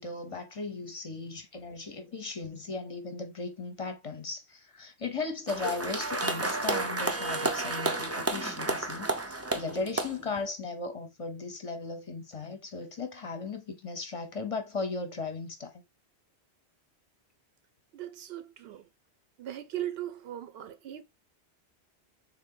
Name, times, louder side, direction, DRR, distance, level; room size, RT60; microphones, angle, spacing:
voice 1, 0.0-15.8, left 4 dB, 35° left, 0.7 m, -37 dB
sound 1, 5.5-10.4, right 2 dB, 25° right, 0.3 m, -31 dB
voice 2, 17.9-18.9 19.4-21.0, right 12 dB, 70° right, 0.8 m, -38 dB
3.7 x 2.8 x 3.7 m
omnidirectional pair, 1.1 m